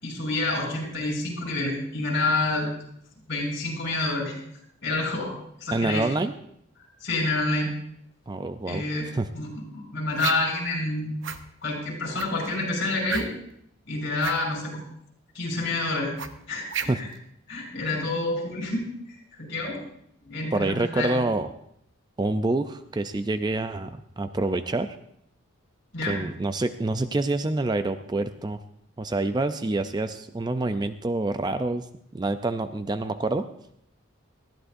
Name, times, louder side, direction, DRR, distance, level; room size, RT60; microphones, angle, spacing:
voice 1, 0.0-2.7 3.3-4.4 4.8-5.3 5.6-6.0 7.0-7.7 8.7-9.1 9.3-11.1 11.6-13.3 13.9-14.8 15.3-16.1 16.5-17.1 17.5-19.8 20.2-21.1 25.9-26.2, left 2 dB, 60° left, -2 dB, 5.3 m, -28 dB
voice 2, 5.7-6.3 8.3-8.8 9.1-9.3 16.9-17.0 20.5-21.5 22.2-25.0 26.1-28.6 29.0-31.9 32.1-33.5, right 2 dB, 20° right, 10 dB, 0.4 m, -27 dB
sound 1, 10.2-10.6 11.2-11.4 12.1-12.5 13.1-13.5 14.1-14.4 16.2-17.2, right 6 dB, 65° right, 0.8 m, -32 dB
19.5 x 13.5 x 2.6 m, 0.71 s
head